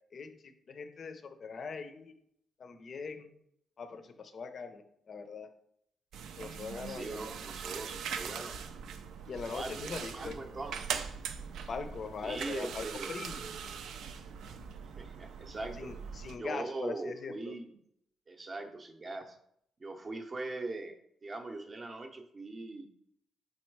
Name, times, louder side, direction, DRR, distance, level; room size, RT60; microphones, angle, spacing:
voice 1, 0.1-2.1 2.6-3.3 3.8-5.5 6.4-7.3 9.3-10.4 11.7-13.4 15.8-17.5, left 5 dB, 35° left, 9 dB, 0.6 m, -42 dB
sound 1, 6.1-16.3, right 7 dB, 75° right, 0.5 m, -41 dB
voice 2, 6.7-8.5 9.5-10.9 12.2-13.1 15.0-15.9 16.4-17.7 18.3-19.4 19.8-21.0 21.2-22.9, right 2 dB, 25° right, 4 dB, 0.7 m, -41 dB
5.2 x 4.2 x 4.6 m, 0.71 s
cardioid pair, 180°, 0 cm